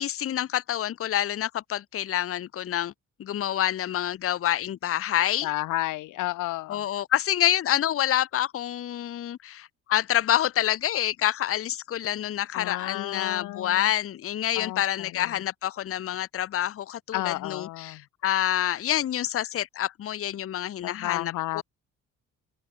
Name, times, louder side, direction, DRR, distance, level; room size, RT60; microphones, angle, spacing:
voice 1, 0.0-2.9 3.2-5.5 6.7-21.6, left 12 dB, 50° left, 0.7 m, -27 dB
voice 2, 5.4-6.8 12.5-13.9 14.6-15.3 17.1-18.0 20.8-21.6, left 17 dB, 90° left, 1.1 m, -32 dB
cardioid pair, 90°, 30 cm